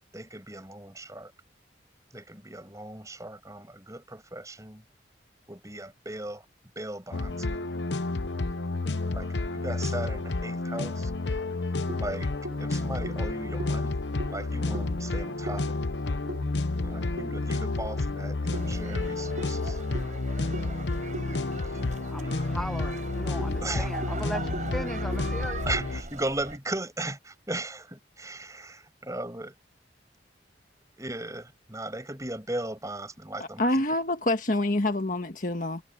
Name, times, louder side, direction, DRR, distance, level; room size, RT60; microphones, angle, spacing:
voice 1, 0.1-1.3 2.1-4.8 5.5-6.5 6.8-7.6 9.1-11.1 12.0-12.3 12.6-14.0 14.3-15.8 16.8-19.8 21.6-21.8 22.2-22.3 23.6-24.0 25.7-29.5 31.0-33.9, right 2 dB, 15° right, 7.5 m, -37 dB
sound 1, 7.1-26.0, left 2 dB, 75° left, 0.9 m, -30 dB
sound 2, 11.4-17.9 18.5-22.4 22.7-22.8 23.2-26.8, right 1 dB, 75° right, 5.5 m, -44 dB
Farm Restaurant, 18.5-26.6, right 3 dB, 40° right, 7.2 m, -42 dB
voice 2, 22.1-25.6, equal, ahead, 0.9 m, -37 dB
voice 3, 33.6-35.8, left 1 dB, 45° left, 1.6 m, -26 dB
head